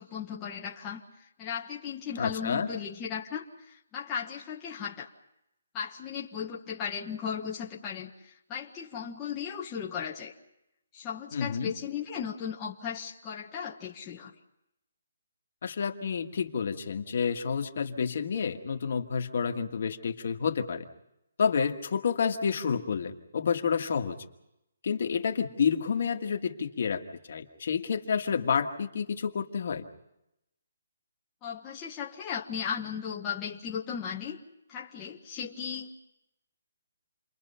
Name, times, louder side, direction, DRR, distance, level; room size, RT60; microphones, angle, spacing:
voice 1, 0.0-5.1 5.7-10.3 10.9-14.3 31.4-34.4 34.7-36.1, left 7 dB, 15° left, -4 dB, 1.0 m, -36 dB
voice 2, 2.2-2.7 11.3-11.7 15.6-20.8 21.4-24.2 24.8-27.0 27.3-29.8, left 6 dB, 45° left, 4 dB, 1.7 m, -29 dB
29.0 x 22.5 x 5.7 m, 0.85 s
hypercardioid pair, 175°, 0 cm